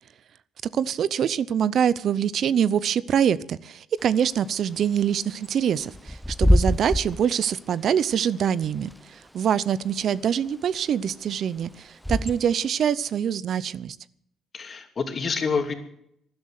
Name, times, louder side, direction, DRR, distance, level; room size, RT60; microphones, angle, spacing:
voice 1, 0.7-14.0, right 8 dB, 65° right, 19 dB, 0.7 m, -24 dB
Bird / Wind, 4.0-12.7, equal, ahead, 0.7 m, -28 dB
voice 2, 14.5-15.7, left 5 dB, 45° left, 6 dB, 2.8 m, -27 dB
13.0 x 11.5 x 9.5 m, 0.74 s
cardioid pair, 80°, 0 cm